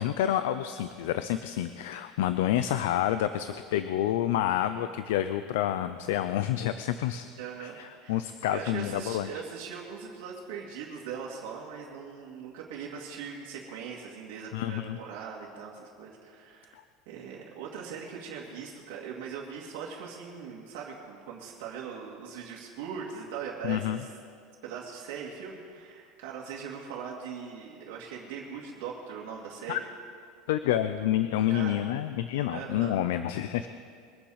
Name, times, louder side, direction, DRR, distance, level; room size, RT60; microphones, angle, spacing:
voice 1, 0.0-7.3 7.6-9.3 14.5-15.0 16.7-16.8 23.6-24.0 29.7-29.8 30.5-33.7, left 12 dB, 90° left, 11 dB, 0.5 m, -28 dB
voice 2, 7.4-16.8 17.1-24.1 24.6-29.8 31.5-31.8 32.5-33.0, right 6 dB, 70° right, -4 dB, 2.3 m, -40 dB
23.0 x 8.8 x 5.0 m, 2.2 s
cardioid pair, 170°, 0 cm